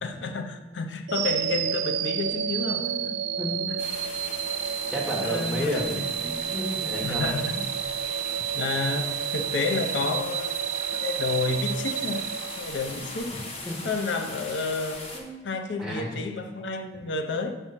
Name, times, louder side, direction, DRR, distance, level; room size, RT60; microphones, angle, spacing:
voice 1, 0.0-2.8 3.7-3.8 5.1-6.1 7.0-7.8 8.5-10.5 10.9-12.3 12.6-13.4 13.8-15.0 15.4-17.6, left 3 dB, 90° left, 0.5 m, -30 dB
sound 1, 1.1-13.2, right 9 dB, 80° right, 0.3 m, -30 dB
voice 2, 2.8-3.7 4.9-7.3 13.6-13.8 15.1-15.4 15.8-16.2, equal, 5° right, 1.1 m, -32 dB
sound 2, 3.8-15.2, left 2 dB, 35° left, 0.8 m, -39 dB
6.5 x 3.1 x 5.6 m
head